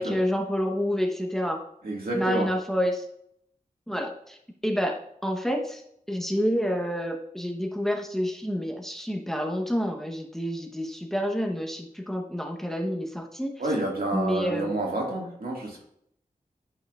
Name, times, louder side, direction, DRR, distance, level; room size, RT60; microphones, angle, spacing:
voice 1, 0.0-1.6 2.1-3.1 3.9-4.4 4.6-5.8 6.1-13.7 14.1-14.8, equal, 5° left, 3 dB, 1.0 m, -28 dB
voice 2, 1.8-2.5 13.6-15.8, right 2 dB, 80° right, -2 dB, 2.0 m, -29 dB
11.0 x 5.5 x 2.4 m, 0.72 s
wide cardioid pair, 55°, 15 cm